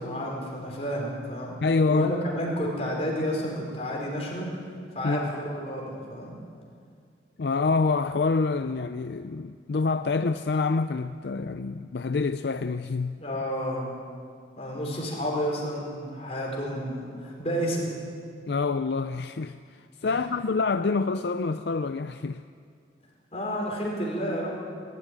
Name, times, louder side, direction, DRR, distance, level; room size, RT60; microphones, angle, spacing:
voice 1, 0.0-1.5 1.9-4.5 4.9-6.3 13.2-13.9 14.6-17.9 20.0-20.2 23.3-24.6, equal, 35° left, 5.1 m, -30 dB
voice 2, 1.6-2.1 5.0-5.3 7.4-13.2 18.5-19.6 20.0-22.4, left 4 dB, 65° left, 0.5 m, -26 dB
21.0 x 13.5 x 9.7 m
head